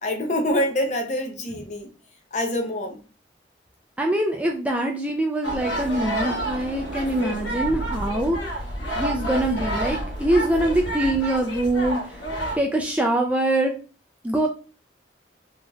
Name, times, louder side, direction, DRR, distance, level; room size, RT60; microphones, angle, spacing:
voice 1, 0.0-1.9 2.3-3.0, left 1 dB, 40° left, 0.6 m, -25 dB
voice 2, 4.0-8.4 9.0-12.2 12.6-13.7 14.2-14.5, right 1 dB, 10° right, 0.3 m, -23 dB
sound 1, 5.4-12.6, right 1 dB, 90° left, 1.0 m, -30 dB
sound 2, 5.4-10.8, equal, 75° right, 0.7 m, -35 dB
3.4 x 2.8 x 2.2 m
head